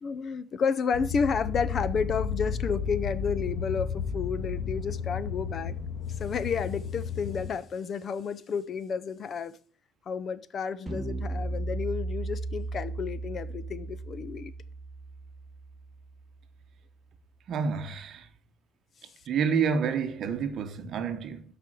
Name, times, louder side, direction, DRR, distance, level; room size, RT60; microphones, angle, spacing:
voice 1, 0.0-5.8 6.1-9.6 10.1-14.5, left 6 dB, 35° left, 0.5 m, -31 dB
sound 1, 0.9-7.5, left 6 dB, 80° left, 1.9 m, -33 dB
sound 2, 10.9-16.2, right 2 dB, 10° right, 1.9 m, -36 dB
voice 2, 17.5-18.3 19.3-21.4, right 6 dB, 45° right, 1.0 m, -29 dB
13.0 x 5.1 x 4.5 m
cardioid pair, 170°, 0 cm